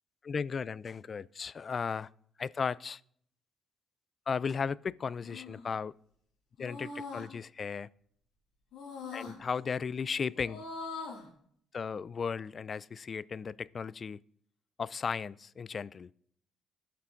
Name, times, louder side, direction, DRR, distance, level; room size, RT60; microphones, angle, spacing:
voice 1, 0.2-2.1 2.4-3.0 4.3-5.9 6.6-7.9 9.1-10.6 11.7-14.2 14.8-16.1, left 6 dB, 45° left, 0.3 m, -35 dB
sound 1, 5.2-5.7 6.6-7.3 8.7-9.4 10.3-11.3, left 4 dB, 90° left, 2.4 m, -42 dB
16.5 x 5.9 x 3.8 m
cardioid pair, 90°, 0 cm